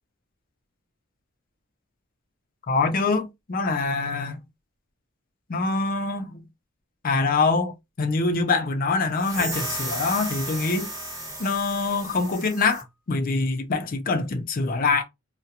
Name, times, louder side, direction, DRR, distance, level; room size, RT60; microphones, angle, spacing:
voice 1, 2.7-4.4 5.5-6.4 7.0-10.9 11.4-15.0, left 3 dB, 45° left, 0.5 m, -24 dB
sound 1, 9.2-12.8, right 1 dB, 20° right, 1.1 m, -34 dB
2.3 x 2.1 x 2.8 m
head